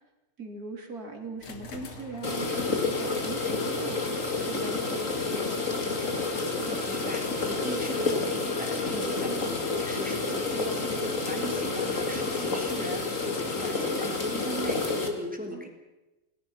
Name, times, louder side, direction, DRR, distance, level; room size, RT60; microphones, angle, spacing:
voice 1, 0.4-4.1 4.4-6.1 9.3-9.5 15.5-15.7, right 3 dB, 45° right, 2 dB, 4.1 m, -40 dB
sound 1, 1.4-14.2, left 1 dB, 75° left, 3.0 m, -47 dB
sound 2, 2.2-15.1, left 3 dB, 35° left, 3.1 m, -29 dB
voice 2, 6.7-15.7, equal, 5° right, 3 dB, 3.3 m, -37 dB
28.0 x 20.0 x 5.9 m, 1.0 s
omnidirectional pair, 2.4 m